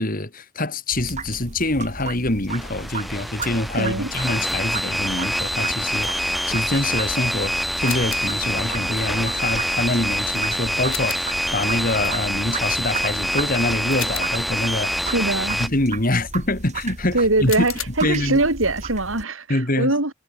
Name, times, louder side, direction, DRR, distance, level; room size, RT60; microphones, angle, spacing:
voice 1, 0.0-7.5 7.8-15.0 15.6-18.5 19.5-19.9, left 2 dB, 40° left, 3.1 m, -25 dB
sound 1, 0.9-19.2, right 4 dB, 35° right, 2.2 m, -35 dB
sound 2, 2.5-15.7, equal, ahead, 1.4 m, -26 dB
voice 2, 3.7-4.1 15.1-15.6 17.1-20.1, right 2 dB, 70° right, 4.0 m, -22 dB
sound 3, 7.9-8.5 10.9-11.4 14.0-14.6 17.5-17.9, left 13 dB, 75° left, 4.6 m, -33 dB
head